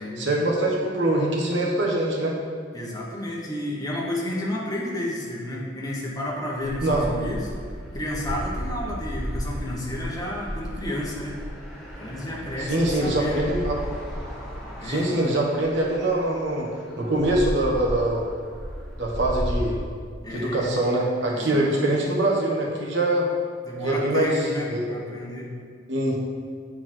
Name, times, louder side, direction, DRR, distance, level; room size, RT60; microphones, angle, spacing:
voice 1, 0.0-2.3 6.8-7.1 12.6-13.7 14.8-16.7 17.0-18.3 19.0-19.8 20.3-23.3 23.8-24.3 24.7-24.9 25.9-26.2, right 1 dB, 70° right, -3 dB, 1.4 m, -23 dB
voice 2, 2.7-7.5 7.9-11.4 12.0-13.5 14.7-15.2 20.2-20.7 21.3-22.0 23.6-25.5, left 1 dB, 20° left, -4 dB, 1.3 m, -31 dB
sound 1, 6.6-19.8, equal, ahead, 1.3 m, -34 dB
7.6 x 4.4 x 4.4 m, 2.2 s
head